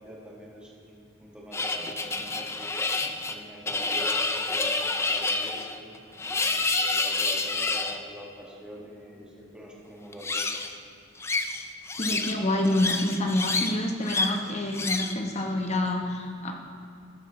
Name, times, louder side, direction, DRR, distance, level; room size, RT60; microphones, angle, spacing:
voice 1, 0.0-5.9 6.3-10.5 12.5-12.7, equal, 5° right, -5 dB, 1.8 m, -45 dB
sound 1, 1.5-8.0 10.1-10.7 11.2-12.4 12.6-13.7 14.1-14.4 14.7-15.2, left 3 dB, 15° left, 0.4 m, -28 dB
voice 2, 12.0-16.5, left 1 dB, 35° left, 2 dB, 1.0 m, -27 dB
13.0 x 10.5 x 3.2 m, 2.4 s
head